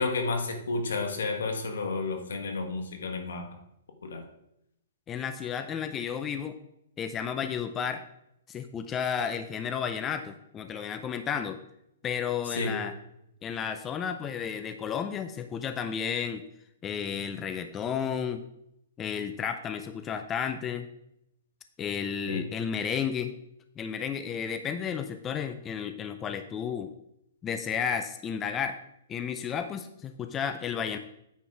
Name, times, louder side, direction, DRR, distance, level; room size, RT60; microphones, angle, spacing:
voice 1, 0.0-3.5 4.0-4.2 12.5-12.8 22.3-22.5, left 3 dB, 85° left, 4 dB, 1.5 m, -31 dB
voice 2, 5.1-6.6 7.0-8.0 8.5-11.6 12.0-12.9 13.4-16.4 16.8-18.4 19.0-20.9 21.8-23.3 23.8-26.9 27.4-28.8 29.1-31.0, left 7 dB, 15° left, 8 dB, 0.4 m, -32 dB
9.0 x 4.5 x 4.8 m, 0.79 s
hypercardioid pair, 155°, 0 cm